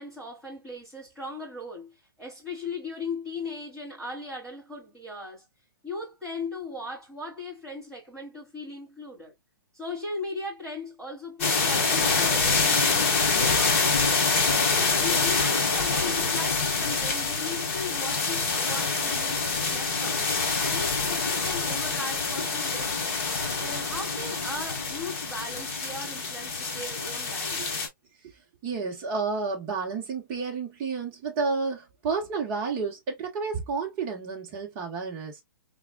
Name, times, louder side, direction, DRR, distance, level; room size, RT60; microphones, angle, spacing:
voice 1, 0.0-5.4 5.8-9.3 9.7-14.5 15.0-20.2 20.7-23.1 23.5-27.8, left 3 dB, 5° left, 2.8 m, -38 dB
sound 1, 11.4-27.9, left 4 dB, 40° left, 1.6 m, -26 dB
voice 2, 28.6-35.4, right 4 dB, 20° right, 1.1 m, -31 dB
3.9 x 3.6 x 2.2 m
hypercardioid pair, 175°, 12 cm